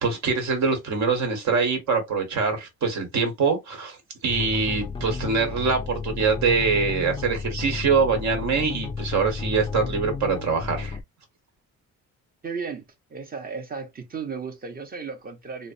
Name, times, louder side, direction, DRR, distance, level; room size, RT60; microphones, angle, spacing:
voice 1, 0.0-4.0 4.2-11.0, right 4 dB, 65° right, 1.4 m, -24 dB
sound 1, 4.3-11.0, left 5 dB, 20° left, 0.3 m, -33 dB
voice 2, 12.4-15.7, right 5 dB, 30° right, 0.9 m, -35 dB
2.9 x 2.1 x 2.6 m
cardioid pair, 90°, 30 cm